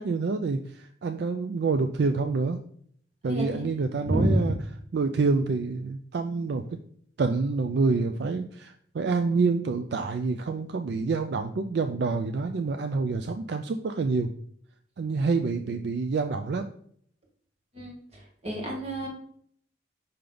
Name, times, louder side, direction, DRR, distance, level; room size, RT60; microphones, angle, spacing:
voice 1, 0.0-2.6 3.2-4.5 4.9-6.6 7.2-14.3 15.0-16.7, right 4 dB, 60° right, 7 dB, 0.4 m, -27 dB
voice 2, 3.2-3.7 4.0-4.5 17.7-19.1, right 1 dB, 35° right, -1 dB, 1.7 m, -28 dB
5.7 x 5.0 x 3.8 m, 0.63 s
head